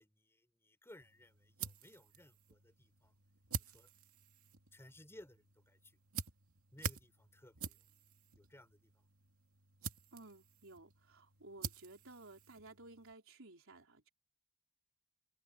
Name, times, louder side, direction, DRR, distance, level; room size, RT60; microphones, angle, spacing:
voice 1, 0.0-3.1 3.6-3.9 4.7-5.9 6.7-7.8 8.3-9.0, left 1 dB, 10° left, 4.8 m, -60 dB
sound 1, 1.0-13.1, right 6 dB, 85° right, 2.6 m, -48 dB
voice 2, 10.1-14.1, right 2 dB, 65° right, 4.3 m, -56 dB
open air
head